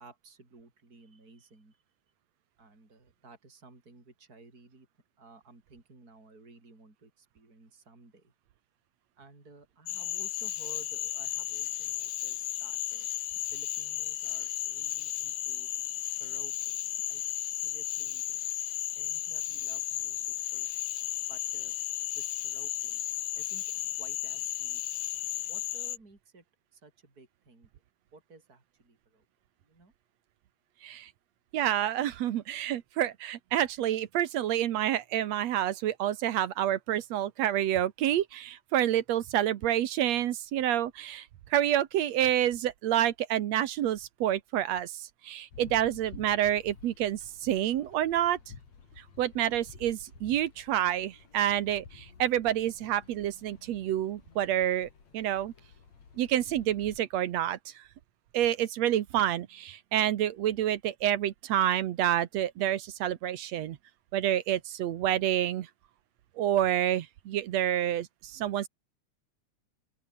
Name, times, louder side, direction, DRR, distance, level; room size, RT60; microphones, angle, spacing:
voice 1, 0.0-1.8 2.6-4.9 5.2-8.3 9.2-13.1 13.5-15.7 16.2-16.7 17.0-18.5 18.9-20.9 21.3-21.7 22.1-23.0 23.3-23.6 24.0-24.8 25.4-26.4 26.7-27.7 28.1-29.3 29.6-29.9, right 3 dB, 30° right, 6.2 m, -55 dB
Cricket / Frog, 9.9-26.0, left 14 dB, 90° left, 2.6 m, -34 dB
voice 2, 31.5-48.4 49.0-55.5 56.2-57.8 58.3-63.8 64.1-65.7 66.4-68.7, right 11 dB, 70° right, 2.2 m, -28 dB
sound 1, 45.5-57.0, left 6 dB, 65° left, 4.7 m, -52 dB
open air
omnidirectional pair, 3.4 m